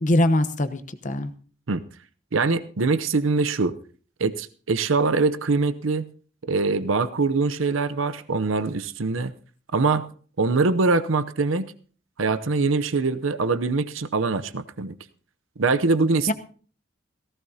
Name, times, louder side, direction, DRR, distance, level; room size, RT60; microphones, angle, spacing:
voice 1, 0.0-1.3 16.3-16.4, left 1 dB, 40° left, 11 dB, 0.9 m, -22 dB
voice 2, 2.3-3.8 4.2-6.1 6.5-9.3 9.7-10.0 10.4-11.7 12.2-14.9 15.6-16.3, right 3 dB, 80° right, 12 dB, 0.7 m, -23 dB
18.0 x 15.5 x 2.8 m, 0.42 s
head